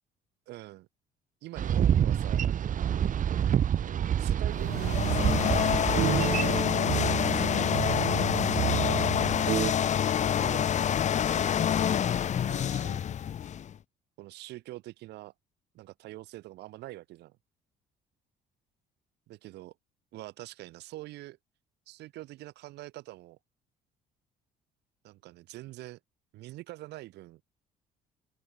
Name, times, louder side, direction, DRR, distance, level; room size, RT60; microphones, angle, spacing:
voice 1, 0.5-0.9 1.4-3.0 3.8-5.5 7.0-9.1 10.2-10.8 11.2-13.0 14.2-15.3 15.7-17.4 19.3-19.7 20.1-21.4 21.9-23.4 25.0-26.0 26.3-27.4, right 17 dB, 80° right, 7.3 m, -45 dB
Boat Water vehicle, 1.6-6.6, right 9 dB, 50° right, 4.6 m, -27 dB
sound 1, 4.6-13.7, left 9 dB, 45° left, 1.1 m, -27 dB
sound 2, 4.6-9.7, right 14 dB, 65° right, 1.0 m, -31 dB
cardioid pair, 110°, 17 cm